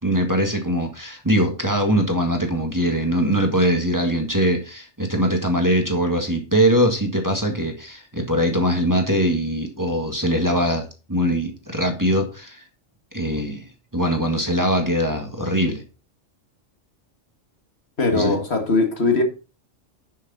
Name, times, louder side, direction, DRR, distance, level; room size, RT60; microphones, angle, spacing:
voice 1, 0.0-12.6 13.1-13.6 13.9-15.8 18.1-18.3, equal, 15° right, 1.7 m, -22 dB
voice 2, 18.0-19.2, left 3 dB, 55° left, 2.1 m, -20 dB
11.5 x 6.5 x 3.9 m
omnidirectional pair, 1.3 m